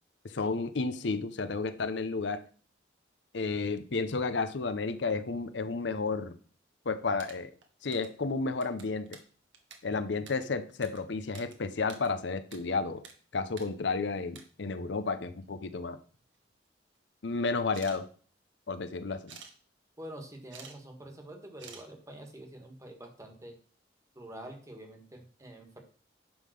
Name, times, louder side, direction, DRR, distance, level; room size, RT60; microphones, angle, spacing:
voice 1, 0.2-2.4 3.3-6.4 6.9-7.5 7.8-9.2 9.8-13.0 13.3-16.0 17.2-18.1 18.7-19.4, left 4 dB, 70° left, 11 dB, 0.7 m, -32 dB
sound 1, 6.9-8.2 8.5-11.5 11.8-12.6 12.8-13.1 13.5-13.7 14.1-14.4 15.4-15.5 15.9-16.5 17.6-18.0 19.3-19.5 20.3-20.8 21.0-21.1 21.6-21.9, right 6 dB, 80° right, 1.6 m, -50 dB
voice 2, 20.0-23.6 24.1-25.8, right 1 dB, 15° right, 4 dB, 1.5 m, -46 dB
10.5 x 3.7 x 6.4 m, 0.42 s
head